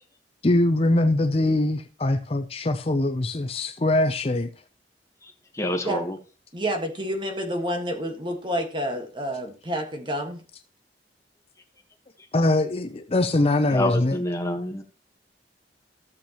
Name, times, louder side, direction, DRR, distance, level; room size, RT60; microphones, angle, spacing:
voice 1, 0.4-4.5 12.3-14.2, left 2 dB, 35° left, 0.6 m, -22 dB
voice 2, 5.2-6.2 13.7-14.8, left 1 dB, 15° left, 1.3 m, -28 dB
voice 3, 6.5-10.4, equal, 25° right, 1.6 m, -29 dB
14.5 x 7.2 x 3.0 m
head